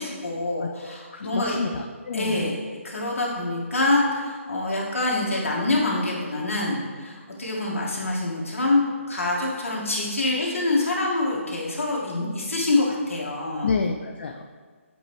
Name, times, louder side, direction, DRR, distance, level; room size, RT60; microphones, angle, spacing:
voice 1, 0.0-1.7 2.1-2.6 2.8-13.7, left 2 dB, 70° left, -3 dB, 1.8 m, -25 dB
voice 2, 1.1-2.5 13.6-14.4, left 5 dB, 55° left, 3 dB, 0.4 m, -29 dB
7.8 x 4.4 x 3.2 m, 1.5 s
hypercardioid pair, 155°, 7 cm